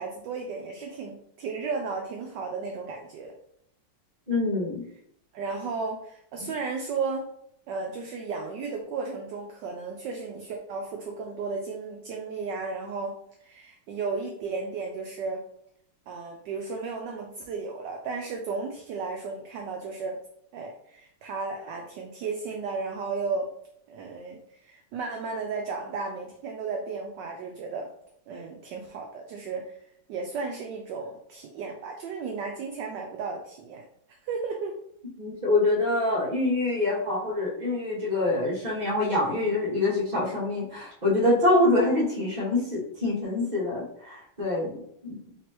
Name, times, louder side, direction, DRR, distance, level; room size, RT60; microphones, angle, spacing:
voice 1, 0.0-3.3 5.3-7.3 7.7-13.1 13.4-15.4 16.1-20.2 20.5-23.5 23.9-27.9 28.3-29.8 30.1-33.8 34.2-34.7, right 4 dB, 75° right, 2 dB, 1.0 m, -34 dB
voice 2, 4.3-4.9 6.4-6.5 35.2-45.2, left 2 dB, 25° right, -6 dB, 1.3 m, -25 dB
4.3 x 3.2 x 2.9 m, 0.72 s
omnidirectional pair, 2.3 m